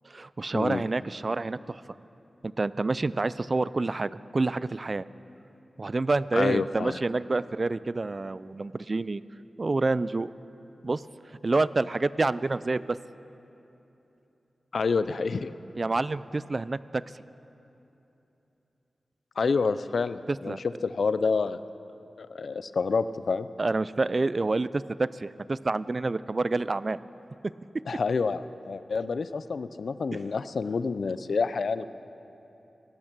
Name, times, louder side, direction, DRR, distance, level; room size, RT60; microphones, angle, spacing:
voice 1, 0.0-1.8 2.4-5.1 5.8-9.2 9.6-10.3 10.8-11.0 11.3-13.0 15.8-17.0 20.3-20.6 23.6-27.0 30.1-30.2, right 3 dB, 40° right, 17 dB, 0.3 m, -28 dB
voice 2, 6.3-7.0 14.7-15.5 19.4-20.6 20.8-21.6 22.2-23.5 27.9-31.9, left 4 dB, 75° left, 14 dB, 0.4 m, -28 dB
17.5 x 12.0 x 6.1 m, 3.0 s
wide cardioid pair, 75°, 0 cm